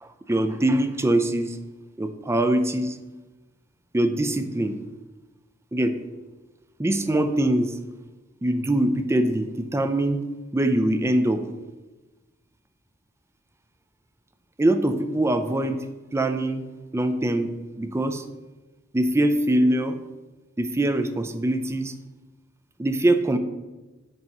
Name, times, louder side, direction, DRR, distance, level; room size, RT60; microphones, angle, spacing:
voice 1, 0.0-1.6 2.0-3.0 3.9-4.8 5.7-5.9 6.8-7.8 8.4-10.2 10.5-11.4 14.6-15.8 16.1-16.6 16.9-17.5 17.8-18.2 18.9-20.0 20.6-21.9 22.8-23.4, right 1 dB, 15° right, 8 dB, 0.4 m, -23 dB
8.0 x 2.9 x 5.3 m, 1.2 s
head